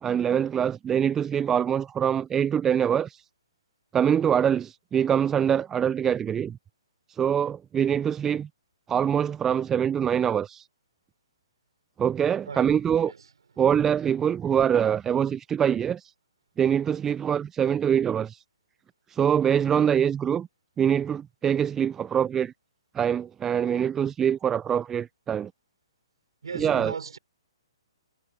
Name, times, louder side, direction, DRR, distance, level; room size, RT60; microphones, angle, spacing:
voice 1, 0.0-3.2 3.9-6.6 7.1-8.5 8.9-10.7 12.0-13.1 13.6-16.1 16.6-18.4 19.1-20.5 20.8-22.5 22.9-25.5 26.5-26.9, right 8 dB, 15° right, 0.7 m, -24 dB
voice 2, 26.4-27.2, right 5 dB, 70° right, 6.5 m, -36 dB
figure-of-eight pair, 125°, 3 cm